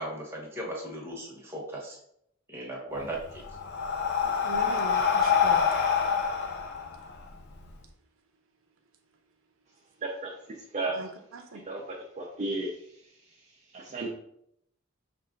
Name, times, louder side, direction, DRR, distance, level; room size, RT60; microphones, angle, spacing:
voice 1, 0.0-2.0 2.5-3.4, right 1 dB, 10° right, -3 dB, 1.1 m, -37 dB
Breathing, 3.0-7.7, left 6 dB, 55° left, 0.6 m, -26 dB
voice 2, 4.2-5.8 10.9-11.7, right 3 dB, 80° right, 5 dB, 0.6 m, -41 dB
voice 3, 12.2-12.7 13.7-14.1, right 2 dB, 35° right, -2 dB, 0.6 m, -32 dB
5.5 x 2.5 x 3.7 m, 0.74 s
head